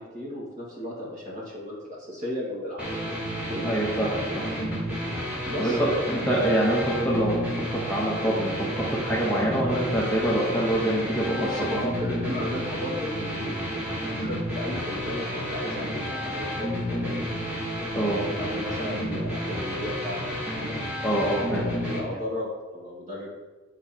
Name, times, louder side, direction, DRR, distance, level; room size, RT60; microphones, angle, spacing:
voice 1, 0.0-3.7 5.4-6.0 11.3-13.7 14.2-17.4 18.2-20.2 20.6-20.8 21.5-23.4, left 1 dB, 35° right, -5 dB, 2.0 m, -34 dB
sound 1, 2.8-22.0, equal, 5° right, 1.3 m, -31 dB
voice 2, 3.6-4.4 5.6-7.4 7.7-11.3 11.7-11.8 17.9-18.2 21.0-21.6, right 1 dB, 10° left, -6 dB, 0.9 m, -25 dB
8.6 x 4.9 x 2.9 m, 1.2 s
head